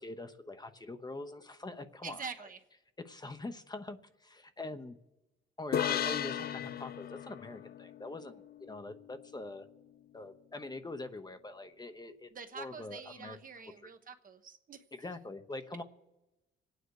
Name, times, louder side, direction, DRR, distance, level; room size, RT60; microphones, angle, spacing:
voice 1, 0.0-2.3 3.0-5.0 5.6-9.6 10.1-12.3 12.5-13.4 13.8-13.9 14.9-15.8, left 2 dB, 20° left, 8 dB, 1.0 m, -44 dB
voice 2, 2.0-2.6 12.3-14.8, right 5 dB, 45° right, 7 dB, 1.2 m, -45 dB
sound 1, 5.7-9.2, left 10 dB, 50° left, 0.5 m, -36 dB
25.5 x 9.4 x 4.8 m, 1.0 s
cardioid pair, 90°, 20 cm